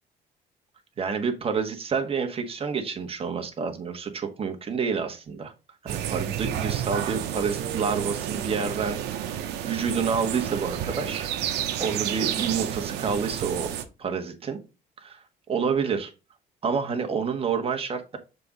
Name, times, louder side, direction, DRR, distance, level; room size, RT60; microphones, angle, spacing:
voice 1, 1.0-5.5 5.8-11.3 11.8-13.7 14.0-14.6 15.0-15.2 15.5-16.1 16.6-18.2, right 5 dB, 35° right, 4 dB, 1.3 m, -28 dB
sound 1, 5.9-13.8, right 10 dB, 85° right, 0.9 m, -30 dB
6.7 x 3.7 x 4.0 m, 0.29 s
cardioid pair, 110°, 17 cm